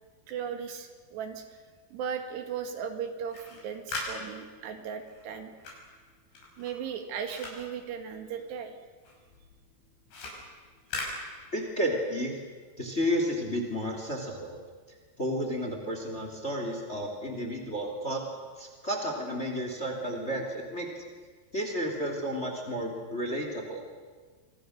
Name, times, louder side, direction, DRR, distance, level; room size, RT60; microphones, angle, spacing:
voice 1, 0.3-1.5 1.9-5.5 6.6-8.8, right 7 dB, 75° right, 6 dB, 3.9 m, -37 dB
sound 1, 3.1-8.7 9.0-11.9, left 2 dB, 80° left, 8.2 m, -41 dB
voice 2, 11.5-12.4 12.8-14.6 15.2-18.2 18.6-21.0 21.5-23.8, equal, 20° left, 3 dB, 2.7 m, -32 dB
28.0 x 24.5 x 6.6 m, 1.5 s
omnidirectional pair, 5.0 m